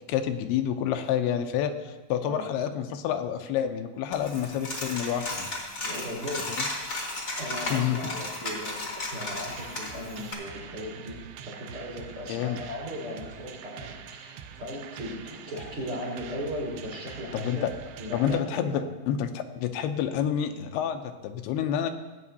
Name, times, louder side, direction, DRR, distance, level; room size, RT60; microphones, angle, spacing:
voice 1, 0.1-5.5 7.7-8.1 12.3-12.6 17.3-17.7 18.1-21.9, left 9 dB, 85° left, 7 dB, 2.6 m, -28 dB
Coin (dropping), 4.1-10.3, left 2 dB, 45° left, 0.8 m, -34 dB
voice 2, 5.8-6.6 7.0-18.8, left 1 dB, 40° right, -4 dB, 2.4 m, -37 dB
sound 1, 9.5-18.4, right 8 dB, 85° right, 2.6 m, -44 dB
18.0 x 8.3 x 2.8 m, 1.2 s
omnidirectional pair, 4.5 m